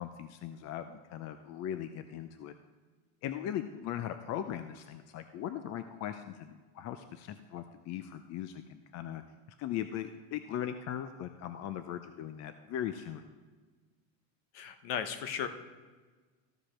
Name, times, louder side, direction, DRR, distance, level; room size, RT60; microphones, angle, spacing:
voice 1, 0.0-2.5 3.2-9.2 9.6-13.3, left 10 dB, 40° left, 9 dB, 0.6 m, -39 dB
voice 2, 14.5-15.5, left 8 dB, 60° left, 9 dB, 1.2 m, -35 dB
14.0 x 5.0 x 5.8 m, 1.4 s
supercardioid pair, 125°, 41 cm